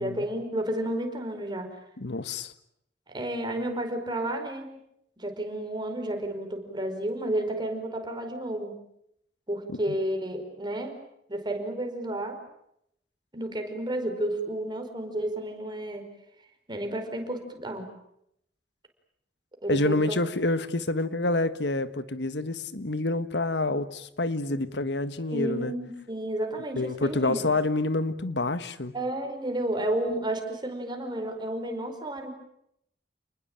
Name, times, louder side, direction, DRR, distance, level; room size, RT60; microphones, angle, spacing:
voice 1, 0.0-1.7 3.1-4.7 5.2-8.7 9.5-11.0 11.3-12.4 13.3-16.1 16.7-17.9 19.6-20.1 25.3-27.4 28.9-32.3, right 1 dB, 25° right, 5 dB, 5.1 m, -31 dB
voice 2, 2.0-2.5 9.9-10.0 19.7-25.7 26.7-28.9, left 2 dB, 80° left, 12 dB, 1.6 m, -28 dB
29.5 x 20.5 x 9.0 m, 0.77 s
head